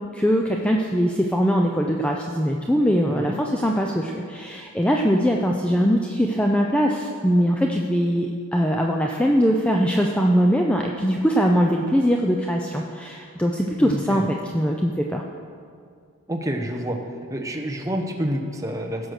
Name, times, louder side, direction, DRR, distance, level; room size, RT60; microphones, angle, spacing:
voice 1, 0.1-15.2, equal, 5° left, 0 dB, 0.5 m, -21 dB
voice 2, 13.8-14.2 16.3-17.0 17.3-19.1, equal, 15° right, 3 dB, 0.9 m, -28 dB
15.5 x 6.1 x 6.5 m, 2.2 s
head